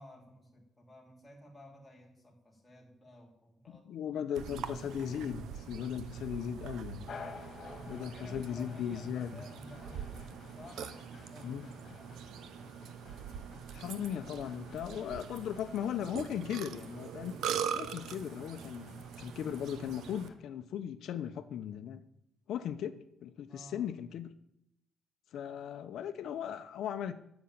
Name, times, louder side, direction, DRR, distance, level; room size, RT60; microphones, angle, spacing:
voice 1, 0.0-3.9 7.6-12.2 23.5-24.0, left 1 dB, 10° left, -1 dB, 3.2 m, -54 dB
voice 2, 3.9-7.1 7.9-9.4 11.4-11.7 13.7-17.4 17.7-22.0 22.5-24.3 25.3-27.1, left 9 dB, 75° left, 10 dB, 0.9 m, -38 dB
Burping eructation, 4.4-20.3, right 8 dB, 85° right, 0.9 m, -43 dB
sound 1, 7.1-20.4, left 4 dB, 45° left, 2.4 m, -53 dB
sound 2, 7.6-8.7 9.7-10.3 14.5-14.8 16.0-16.1 18.2-18.3 19.2-19.4, right 1 dB, 15° right, 2.1 m, -60 dB
11.5 x 7.2 x 8.8 m, 0.78 s
cardioid pair, 150°, 0 cm